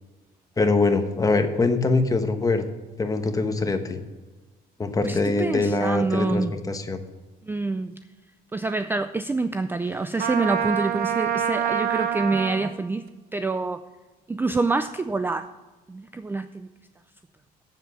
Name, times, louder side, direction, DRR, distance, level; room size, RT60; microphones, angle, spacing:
voice 1, 0.6-2.7 3.0-4.0 4.8-7.0, left 3 dB, 20° left, 7 dB, 1.1 m, -23 dB
voice 2, 5.0-6.5 7.5-7.9 8.5-13.1 13.3-13.8 14.3-15.5 15.9-16.7, right 3 dB, 10° right, 11 dB, 0.4 m, -26 dB
Trumpet, 10.2-12.7, right 8 dB, 60° right, 1.0 m, -26 dB
7.9 x 7.4 x 8.1 m, 1.3 s
cardioid pair, 110°, 17 cm